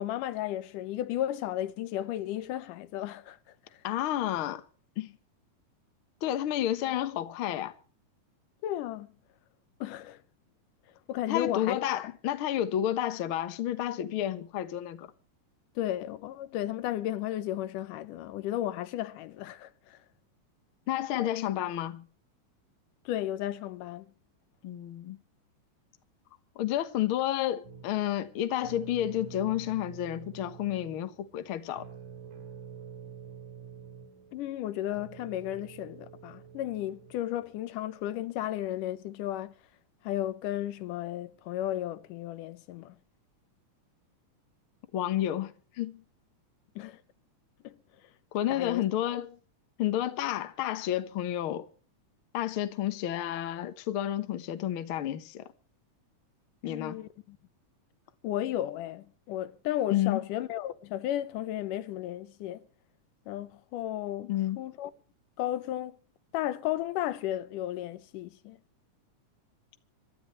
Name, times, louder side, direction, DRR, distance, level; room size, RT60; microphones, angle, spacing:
voice 1, 0.0-3.4 8.6-9.1 9.8-10.2 11.1-12.0 15.8-20.0 23.1-24.1 34.3-39.5 40.0-43.0 46.8-47.0 47.6-47.8 48.5-48.8 56.7-57.4 58.2-62.6 63.3-64.9 65.4-66.0 66.3-68.6, left 13 dB, 85° left, 2.5 m, -34 dB
voice 2, 3.8-4.6 5.0-5.1 6.2-7.7 11.3-15.1 20.9-22.1 24.6-25.2 26.5-31.9 44.9-46.0 48.3-49.4 49.8-51.7 52.3-55.5 56.6-57.0 59.9-60.2 64.3-64.6, left 12 dB, 55° left, 1.6 m, -30 dB
sound 1, 27.6-37.5, right 7 dB, 75° right, 4.3 m, -48 dB
26.0 x 12.5 x 3.1 m
omnidirectional pair, 3.6 m